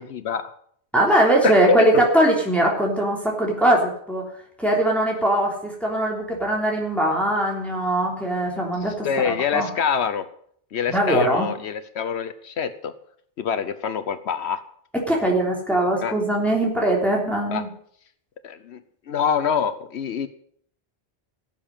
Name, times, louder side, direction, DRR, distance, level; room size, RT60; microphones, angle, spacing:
voice 1, 0.1-0.5 1.4-2.0 9.0-10.3 10.7-12.9 13.4-14.6 16.0-16.2 17.5-17.7 18.4-18.8 19.1-20.3, left 7 dB, 75° left, 12 dB, 1.1 m, -25 dB
voice 2, 0.9-4.2 4.6-9.7 10.9-11.5 15.1-17.7, right 1 dB, ahead, -2 dB, 3.4 m, -21 dB
16.5 x 7.3 x 8.9 m, 0.64 s
omnidirectional pair, 1.1 m